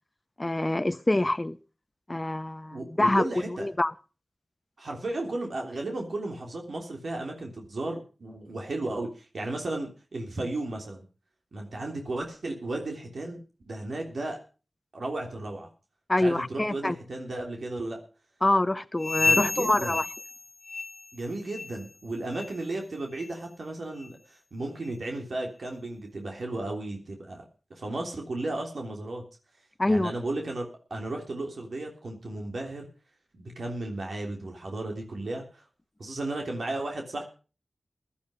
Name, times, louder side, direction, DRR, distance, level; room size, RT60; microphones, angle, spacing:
voice 1, 0.4-1.6 2.1-3.2 3.6-3.9 16.1-17.0 18.4-20.1 29.8-30.1, left 1 dB, 30° left, 0.7 m, -25 dB
voice 2, 2.7-3.7 4.8-11.0 11.5-13.4 13.7-14.4 14.9-15.7 16.2-18.0 19.2-20.0 21.1-27.4 27.7-29.2 29.9-32.9 33.3-35.6 36.0-37.2, right 2 dB, 75° right, 3.3 m, -34 dB
sound 1, 19.0-21.2 21.5-21.9 22.3-22.6 23.2-23.3 24.0-24.1 24.8-24.9, left 4 dB, 65° left, 1.0 m, -30 dB
16.0 x 12.0 x 5.1 m
cardioid pair, 45°, 0 cm